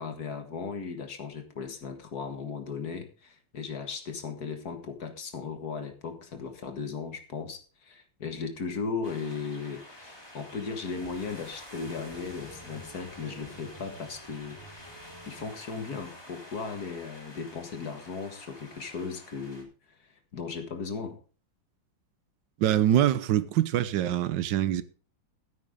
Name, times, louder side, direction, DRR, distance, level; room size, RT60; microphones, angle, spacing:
voice 1, 0.0-15.0 15.3-19.7 20.3-21.2, left 5 dB, 50° left, 2.1 m, -37 dB
sound 1, 9.0-19.6, equal, 10° left, 3.0 m, -48 dB
voice 2, 22.6-24.8, right 11 dB, 70° right, 1.4 m, -24 dB
14.5 x 8.8 x 3.7 m
omnidirectional pair, 2.2 m